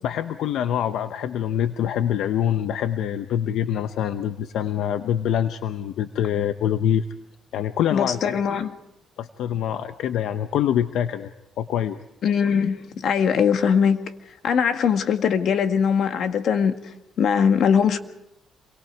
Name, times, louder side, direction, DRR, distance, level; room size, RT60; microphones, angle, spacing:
voice 1, 0.0-7.1 7.5-8.4 9.2-11.3 11.6-12.0, left 10 dB, 85° left, 0.8 m, -25 dB
voice 2, 7.9-8.7 12.2-14.0 14.4-16.8 17.2-18.0, left 7 dB, 70° left, 1.7 m, -21 dB
28.0 x 23.0 x 4.7 m
cardioid pair, 100°, 0 cm